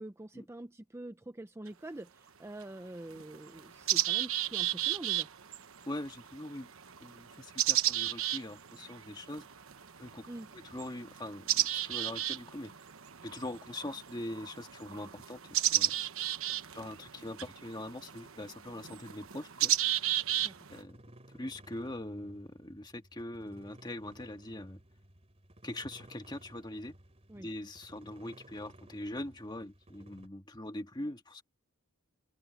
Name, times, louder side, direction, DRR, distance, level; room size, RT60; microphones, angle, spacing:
voice 1, 0.0-5.3 10.3-10.5 20.4-20.5 27.3-27.5, right 1 dB, 10° right, 0.5 m, -45 dB
sound 1, 1.7-1.8 2.6-2.7 3.1-20.8, right 13 dB, 65° right, 1.1 m, -34 dB
voice 2, 5.9-6.7 7.0-9.5 10.0-10.3 10.5-12.7 13.2-15.4 15.7-16.0 16.7-19.8 20.7-21.0 21.3-24.8 25.6-27.0 27.4-31.4, left 1 dB, 20° left, 1.8 m, -42 dB
sound 2, 20.4-30.3, right 1 dB, 30° right, 3.0 m, -57 dB
head